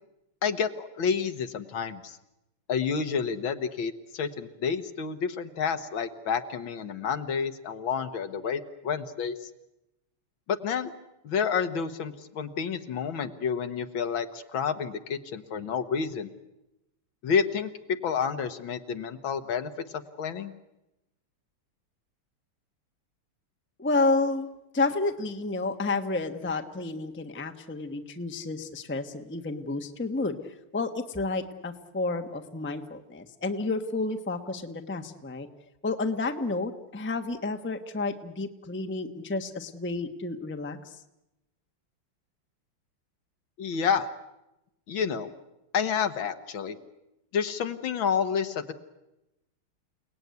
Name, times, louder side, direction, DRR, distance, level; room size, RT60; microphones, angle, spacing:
voice 1, 0.4-2.2 2.7-9.5 10.5-10.9 11.2-16.3 17.2-17.7 18.0-20.5 43.6-44.1 44.9-45.3 45.7-46.8 47.3-48.7, left 6 dB, 65° left, 9 dB, 2.0 m, -29 dB
voice 2, 23.8-24.5 24.7-35.5 35.8-41.0, left 3 dB, 10° left, 6 dB, 0.9 m, -30 dB
29.5 x 18.5 x 9.5 m, 0.94 s
omnidirectional pair, 2.4 m